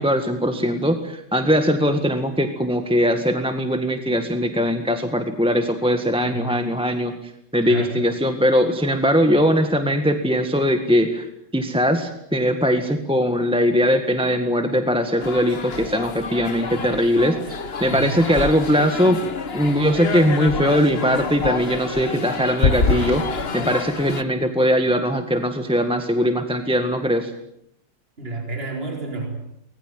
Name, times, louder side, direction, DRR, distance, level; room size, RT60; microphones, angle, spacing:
voice 1, 0.0-7.1 7.5-11.3 11.5-17.4 17.8-19.2 19.5-23.2 23.5-27.3, equal, 5° right, 7 dB, 1.5 m, -20 dB
voice 2, 6.1-6.5 7.6-7.9 17.8-18.1 28.2-29.4, right 2 dB, 30° right, 3 dB, 4.7 m, -30 dB
sound 1, 15.2-24.2, left 4 dB, 35° left, 1.4 m, -27 dB
24.5 x 20.5 x 9.4 m, 0.77 s
omnidirectional pair, 2.2 m